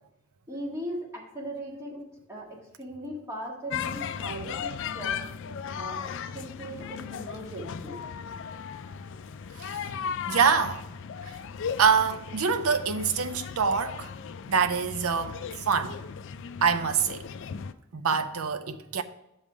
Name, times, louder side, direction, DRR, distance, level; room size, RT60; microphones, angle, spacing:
voice 1, 0.5-2.0 2.3-5.2 5.7-8.0, right 1 dB, 15° right, 1.6 m, -38 dB
sound 1, 3.7-17.7, left 7 dB, 55° left, 0.4 m, -37 dB
voice 2, 10.3-10.8 11.3-11.4 11.8-14.1 14.5-16.0 16.6-17.3 17.9-19.0, right 6 dB, 70° right, 0.6 m, -25 dB
7.1 x 5.4 x 4.9 m
head